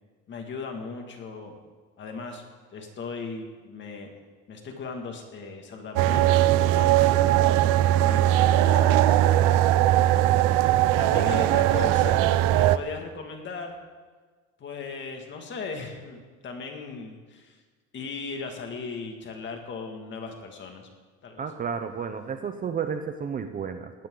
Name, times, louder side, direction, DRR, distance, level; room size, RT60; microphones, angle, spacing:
voice 1, 0.3-1.6 2.0-2.4 2.7-4.1 4.5-7.5 8.0-9.8 10.6-10.7 11.0-12.2 12.4-13.7 14.6-17.6 17.9-20.9 21.2-21.4, left 4 dB, 35° left, 3 dB, 2.3 m, -37 dB
sound 1, 6.0-12.8, right 13 dB, 70° right, 0.8 m, -20 dB
voice 2, 21.4-24.1, right 6 dB, 25° right, 7 dB, 0.7 m, -32 dB
19.5 x 16.5 x 4.0 m, 1.4 s
cardioid pair, 155°, 34 cm